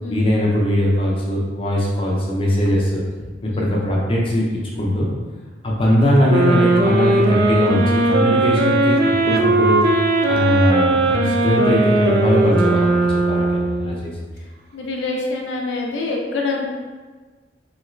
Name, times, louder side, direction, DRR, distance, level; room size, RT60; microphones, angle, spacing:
voice 1, 0.1-3.0 3.4-5.1 5.6-9.8 10.3-14.1, left 1 dB, 30° left, -3 dB, 0.5 m, -20 dB
sound 1, 6.3-14.0, right 2 dB, 55° right, 0.4 m, -18 dB
voice 2, 14.7-16.7, left 3 dB, 80° left, 0 dB, 0.5 m, -25 dB
3.0 x 2.8 x 2.5 m, 1.4 s
head